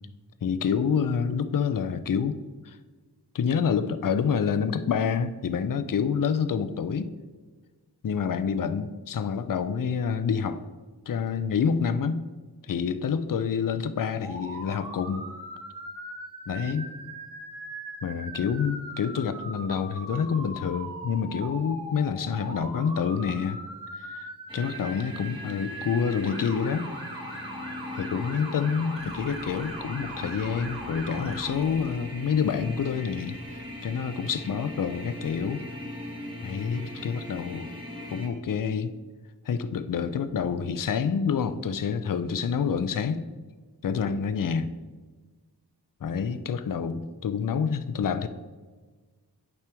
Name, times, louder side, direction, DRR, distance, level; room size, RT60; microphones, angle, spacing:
voice 1, 0.4-2.4 2.7-2.8 3.3-7.1 8.0-10.6 11.1-12.3 12.7-15.2 16.5-16.9 18.0-23.6 24.0-26.9 28.0-35.6 36.4-37.7 38.1-38.9 39.5-43.2 43.8-44.7 46.0-48.3, left 6 dB, 55° left, 11 dB, 0.5 m, -27 dB
Motor vehicle (road) / Siren, 14.2-31.5, right 1 dB, 80° right, 2.0 m, -40 dB
sound 1, 24.5-38.3, left 1 dB, 10° right, 1.5 m, -40 dB
sound 2, 28.9-34.0, left 1 dB, 15° left, 1.3 m, -52 dB
9.2 x 5.8 x 3.5 m, 1.4 s
wide cardioid pair, 60°, 39 cm